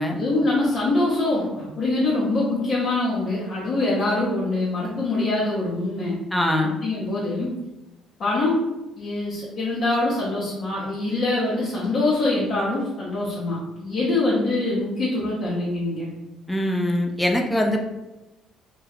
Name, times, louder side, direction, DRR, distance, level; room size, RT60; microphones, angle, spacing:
voice 1, 0.1-6.2 6.8-7.5 8.2-8.6 9.0-16.1, left 2 dB, 50° left, -7 dB, 0.7 m, -24 dB
voice 2, 6.3-6.7 16.5-17.8, left 1 dB, 10° left, 1 dB, 0.5 m, -22 dB
2.2 x 2.2 x 3.2 m, 1.0 s
hypercardioid pair, 50°, 0 cm